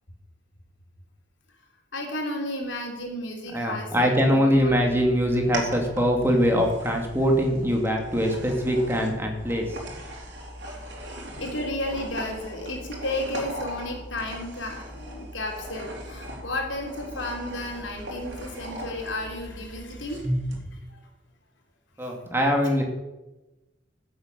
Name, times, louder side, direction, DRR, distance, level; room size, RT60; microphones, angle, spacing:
voice 1, 1.9-4.8 10.7-11.0 11.4-20.3 20.7-21.0 22.0-22.1, left 1 dB, 80° left, 2 dB, 3.4 m, -33 dB
voice 2, 3.5-9.8 22.0-22.8, equal, 10° right, 1 dB, 2.4 m, -23 dB
sound 1, 4.5-20.6, equal, 65° right, 3.7 m, -37 dB
15.0 x 7.9 x 6.8 m, 1.0 s
head